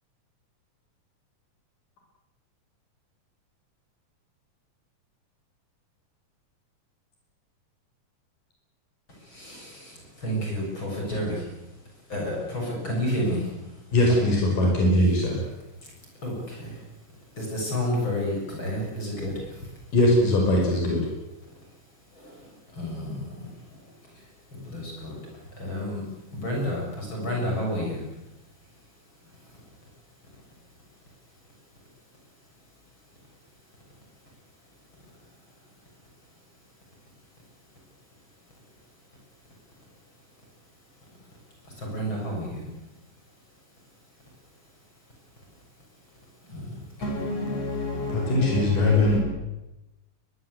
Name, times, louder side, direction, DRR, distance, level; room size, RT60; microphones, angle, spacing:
voice 1, 9.1-14.2 15.8-19.9 21.4-47.3 48.0-48.2, equal, 35° left, 7.9 m, -35 dB
voice 2, 13.9-15.4 19.9-21.0 48.1-49.2, left 1 dB, 85° left, 7.2 m, -21 dB
voice 3, 47.0-49.2, left 4 dB, 55° left, 8.1 m, -27 dB
23.0 x 22.0 x 8.2 m
omnidirectional pair, 3.7 m